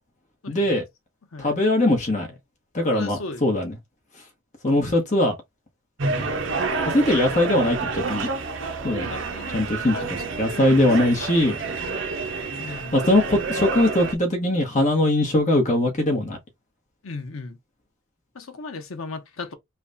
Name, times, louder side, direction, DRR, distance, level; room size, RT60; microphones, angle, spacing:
voice 1, 0.5-0.8 1.4-2.3 2.7-3.7 4.6-5.3 6.9-8.3 8.8-9.1 9.5-10.0 10.4-11.6 12.7-16.4, left 1 dB, 35° left, 1.0 m, -21 dB
voice 2, 2.9-3.4 4.7-4.8 6.1-6.4 9.1-10.1 11.0-11.2 12.6-13.0 17.0-17.6 18.3-19.5, left 3 dB, 85° left, 0.8 m, -37 dB
sound 1, 6.0-14.1, right 4 dB, 65° right, 0.7 m, -29 dB
3.3 x 2.3 x 3.8 m
head